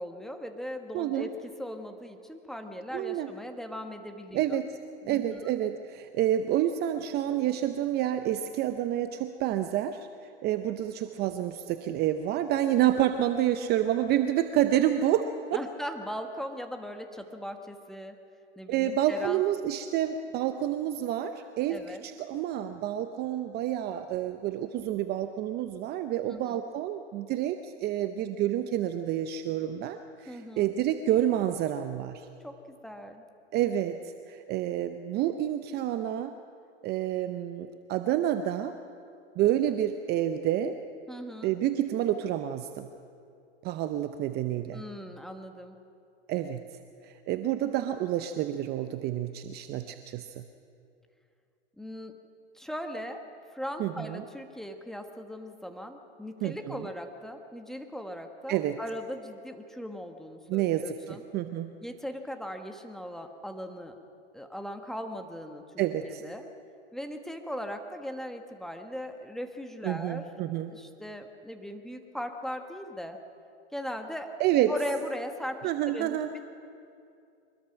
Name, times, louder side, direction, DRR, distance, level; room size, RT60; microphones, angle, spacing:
voice 1, 0.0-4.6 5.0-5.6 15.5-18.2 18.6-19.4 21.7-22.0 26.3-26.6 30.3-30.7 32.4-33.2 41.1-41.5 44.7-45.8 51.8-52.2 52.5-53.2 53.5-61.2 61.8-64.0 64.3-66.5 66.9-70.3 70.6-73.2 73.7-74.3 74.7-76.2, equal, ahead, 5 dB, 1.3 m, -39 dB
voice 2, 0.9-1.3 2.9-3.3 4.3-4.8 5.1-10.1 10.4-15.6 18.7-32.3 33.5-36.3 36.8-38.7 39.4-40.7 41.4-42.9 43.6-44.8 46.3-46.6 47.0-50.4 53.8-54.2 56.4-56.9 58.5-58.8 60.5-61.8 65.8-66.2 69.8-70.7 74.4-74.7 75.6-76.3, right 11 dB, 30° right, 9 dB, 0.7 m, -29 dB
23.5 x 21.0 x 5.9 m, 2.5 s
hypercardioid pair, 125°, 34 cm